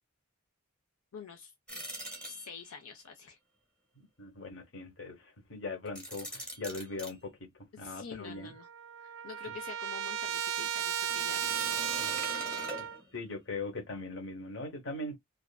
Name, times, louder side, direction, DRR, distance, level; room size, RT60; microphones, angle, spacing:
voice 1, 1.1-1.9 2.2-3.4 7.7-8.7 9.0-11.4, left 6 dB, 90° left, 0.6 m, -47 dB
sound 1, 1.7-2.8 5.9-7.1 11.0-13.3, equal, 5° left, 0.8 m, -43 dB
voice 2, 4.0-8.5 9.5-9.6 12.0-12.4 13.1-15.2, left 2 dB, 60° left, 0.9 m, -41 dB
Trumpet, 8.2-8.3 8.6-13.0, right 9 dB, 65° right, 0.3 m, -34 dB
2.4 x 2.4 x 2.3 m
head